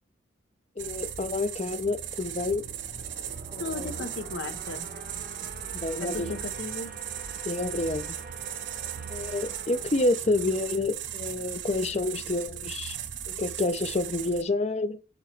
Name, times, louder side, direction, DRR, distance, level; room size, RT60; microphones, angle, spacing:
voice 1, 0.8-2.6 3.5-3.9 5.6-6.3 7.5-8.1 9.1-13.0 13.3-15.0, left 2 dB, 35° left, 0.5 m, -29 dB
sound 1, 0.8-14.4, right 10 dB, 75° right, 0.7 m, -37 dB
sound 2, 1.9-11.4, right 3 dB, 50° right, 1.0 m, -46 dB
voice 2, 3.6-4.9 6.0-6.9, left 3 dB, 80° left, 0.8 m, -36 dB
7.9 x 3.0 x 4.4 m
head